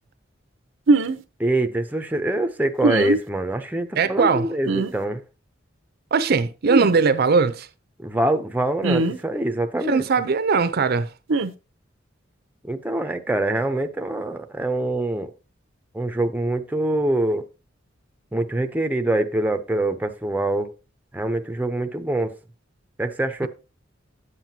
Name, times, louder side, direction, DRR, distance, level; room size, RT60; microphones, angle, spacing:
sound 1, 0.9-1.2 2.8-3.2 4.7-4.9 6.7-6.9 8.8-9.2 11.3-11.5, right 3 dB, 90° right, 0.7 m, -20 dB
voice 1, 1.4-5.2 8.0-10.0 12.6-15.3 15.9-17.4 18.3-20.7 21.1-22.4 23.0-23.5, right 1 dB, 10° right, 0.6 m, -24 dB
voice 2, 4.0-4.5 6.1-7.7 9.9-11.1, right 5 dB, 55° right, 0.6 m, -20 dB
9.8 x 7.5 x 2.8 m
head